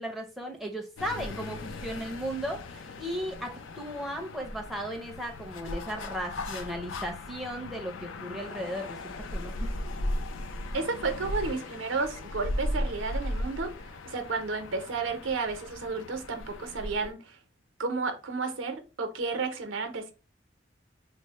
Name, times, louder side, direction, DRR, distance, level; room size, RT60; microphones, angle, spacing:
voice 1, 0.0-9.5, equal, ahead, 0.5 m, -36 dB
sound 1, 1.0-17.1, left 1 dB, 85° left, 0.5 m, -37 dB
voice 2, 10.7-17.4 17.8-20.1, right 4 dB, 85° right, 0.7 m, -32 dB
3.2 x 2.0 x 4.0 m
head